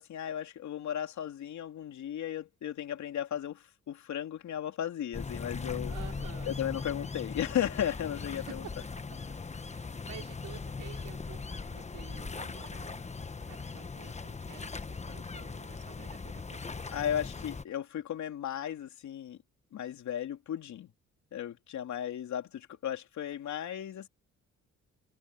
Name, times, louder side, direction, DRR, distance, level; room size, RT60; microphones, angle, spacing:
voice 1, 0.0-5.9 6.4-8.6 16.9-19.4 19.7-20.9 21.3-24.1, left 10 dB, 70° left, 3.1 m, -35 dB
sound 1, 5.1-17.7, left 4 dB, 25° left, 1.3 m, -40 dB
voice 2, 5.9-6.6 8.3-8.9 9.6-13.0 13.5-16.8, right 13 dB, 80° right, 4.5 m, -51 dB
cardioid pair, 90°, 30 cm